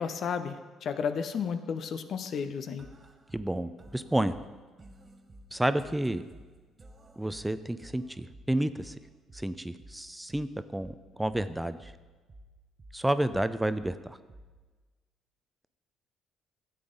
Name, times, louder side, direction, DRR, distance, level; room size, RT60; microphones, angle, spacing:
voice 1, 0.0-2.9, left 6 dB, 55° left, 10 dB, 0.6 m, -33 dB
sound 1, 2.8-14.8, right 1 dB, 35° right, 0.9 m, -54 dB
voice 2, 3.3-4.4 5.5-6.2 7.2-8.9 9.3-11.9 12.9-14.2, right 1 dB, 10° right, 13 dB, 0.5 m, -30 dB
12.5 x 7.9 x 3.8 m, 1.3 s
hypercardioid pair, 50°, 0 cm